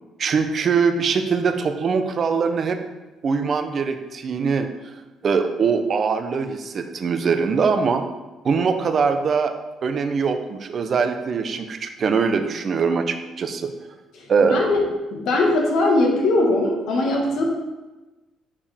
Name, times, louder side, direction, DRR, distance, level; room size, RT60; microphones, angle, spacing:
voice 1, 0.2-2.8 3.2-4.9 5.2-8.0 8.4-9.5 9.8-13.7 14.3-14.6, right 5 dB, 50° right, 7 dB, 0.6 m, -22 dB
voice 2, 14.1-14.8 15.1-17.4, left 2 dB, 75° left, -1 dB, 1.5 m, -20 dB
6.7 x 5.3 x 3.4 m, 1.1 s
cardioid pair, 95°, 0 cm